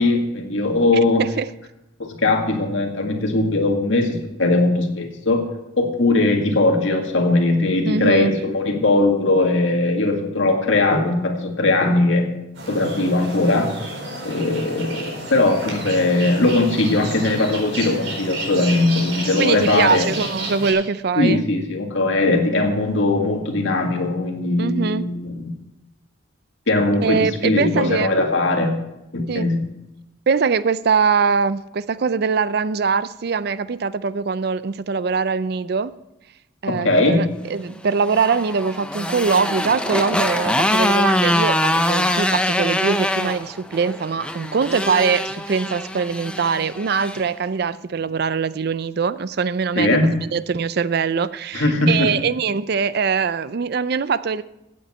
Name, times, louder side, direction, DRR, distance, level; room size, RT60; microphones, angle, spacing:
voice 1, 0.0-1.3 2.0-5.4 5.8-12.3 12.7-13.7 14.2-20.1 21.2-25.5 26.7-28.8 29.1-29.6 36.7-37.2 49.8-50.2 51.5-52.1, left 2 dB, 85° left, 3 dB, 2.0 m, -19 dB
voice 2, 7.9-8.3 19.4-21.4 24.6-25.1 27.0-28.1 29.3-29.5 30.3-35.9 36.6-54.4, right 5 dB, 55° right, 16 dB, 0.4 m, -22 dB
sound 1, 12.5-20.7, right 2 dB, 85° right, 4.4 m, -31 dB
Motorcycle, 37.8-47.2, left 1 dB, 5° left, 0.6 m, -23 dB
15.5 x 8.6 x 4.3 m, 0.93 s
head